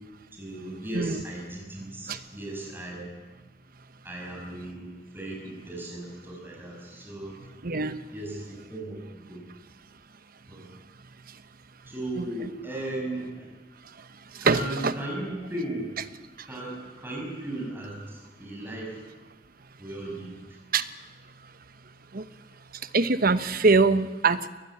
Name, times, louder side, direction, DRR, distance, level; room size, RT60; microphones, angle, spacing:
voice 1, 0.3-3.1 4.0-7.4 8.1-9.4 10.5-10.7 11.9-13.5 14.4-15.9 16.5-19.1 19.8-20.6, right 1 dB, 10° right, -1 dB, 6.2 m, -36 dB
voice 2, 7.6-8.0 12.1-12.5 14.3-14.9 16.4-16.5 20.7-20.9 22.1-22.2 22.8-24.5, right 4 dB, 55° right, 12 dB, 1.0 m, -23 dB
22.0 x 20.0 x 8.6 m, 1.2 s
head